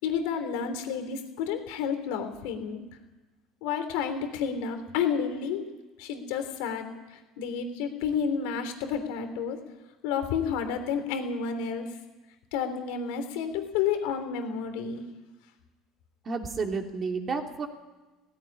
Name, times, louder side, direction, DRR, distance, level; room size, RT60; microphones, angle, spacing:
voice 1, 0.0-2.8 3.6-5.6 6.0-9.6 10.0-11.9 12.5-15.0, left 7 dB, 85° left, 7 dB, 3.3 m, -30 dB
voice 2, 16.2-17.7, right 4 dB, 35° right, 3 dB, 2.8 m, -31 dB
17.5 x 15.5 x 9.9 m, 1.1 s
cardioid pair, 130°, 0 cm